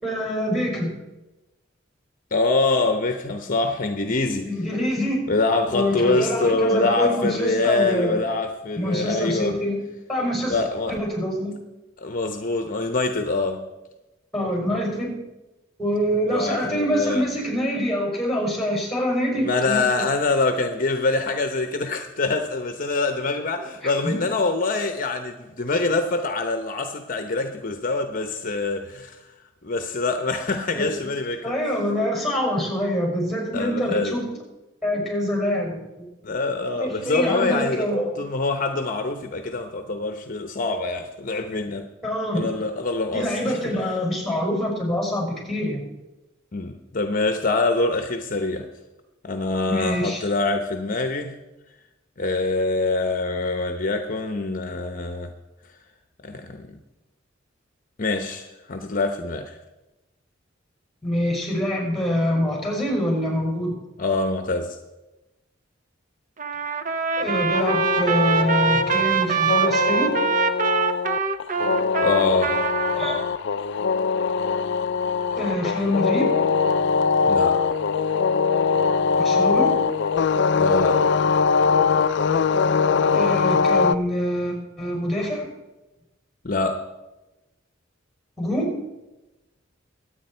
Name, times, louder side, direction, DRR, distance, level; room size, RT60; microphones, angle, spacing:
voice 1, 0.0-1.0 4.5-5.3 5.7-8.2 8.8-9.8 10.1-10.6 10.9-11.5 14.3-15.1 15.8-19.9 23.8-24.2 30.7-30.9 31.4-34.3 34.8-36.1 36.7-38.2 42.0-42.6 43.1-45.8 49.7-50.2 61.0-63.7 67.2-70.2 73.0-73.2 75.3-76.3 79.2-79.8 83.1-85.5 88.4-88.7, equal, ahead, 0 dB, 5.5 m, -25 dB
voice 2, 2.3-4.5 5.3-9.6 10.5-11.0 12.0-13.7 16.2-17.2 19.4-29.2 29.6-31.5 33.5-34.2 36.2-37.9 38.2-41.9 42.3-43.7 46.5-48.7 49.2-51.4 52.2-55.3 56.2-56.8 58.0-59.5 64.0-64.8 72.0-72.6 77.2-77.6 80.6-81.0 86.4-86.8, left 3 dB, 45° left, 7 dB, 0.9 m, -25 dB
Trumpet, 66.4-73.2, right 5 dB, 40° right, 0.9 m, -24 dB
sound 1, 67.5-83.9, left 5 dB, 65° left, 0.4 m, -22 dB
23.5 x 8.9 x 4.4 m, 1.0 s
head